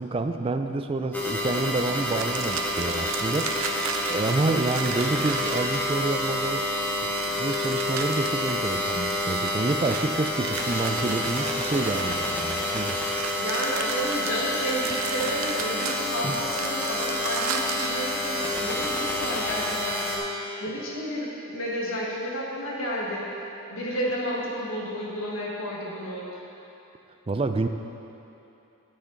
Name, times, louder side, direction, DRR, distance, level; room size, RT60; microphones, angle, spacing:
voice 1, 0.0-6.7 7.0-13.3 16.2-16.4 27.3-27.7, right 2 dB, 25° right, 7 dB, 0.3 m, -28 dB
sound 1, 1.1-20.2, left 1 dB, 10° left, 1.1 m, -28 dB
sound 2, 2.0-6.3 7.1-12.1 12.8-18.0, right 5 dB, 75° right, 0.6 m, -36 dB
voice 2, 13.4-20.1 20.6-23.3 23.7-26.4, equal, 70° left, -4 dB, 1.7 m, -31 dB
9.8 x 8.4 x 4.0 m, 3.0 s
head